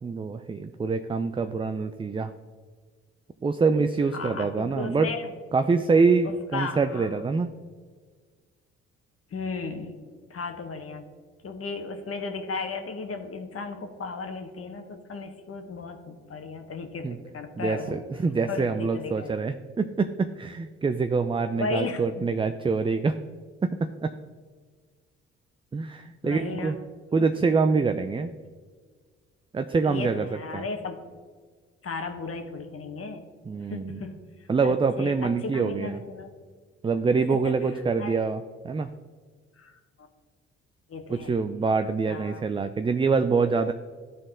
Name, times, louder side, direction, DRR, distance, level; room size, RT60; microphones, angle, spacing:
voice 1, 0.0-2.3 3.4-5.1 5.5-7.5 17.0-17.2 17.6-23.2 23.6-24.1 25.7-26.8 27.1-28.3 29.5-30.6 33.5-34.0 34.5-36.0 36.8-38.9 41.1-43.7, right 4 dB, 15° right, 8 dB, 0.4 m, -25 dB
voice 2, 4.1-5.3 6.2-7.1 9.3-9.9 10.3-11.0 11.4-18.0 18.5-19.3 21.6-22.0 26.2-26.7 29.8-31.0 31.8-33.2 33.7-34.1 34.4-36.3 37.3-38.1 39.6-40.1 40.9-41.3 42.1-42.4, left 4 dB, 50° left, 6 dB, 1.3 m, -35 dB
12.0 x 4.1 x 3.8 m, 1.5 s
supercardioid pair, 55°, 30 cm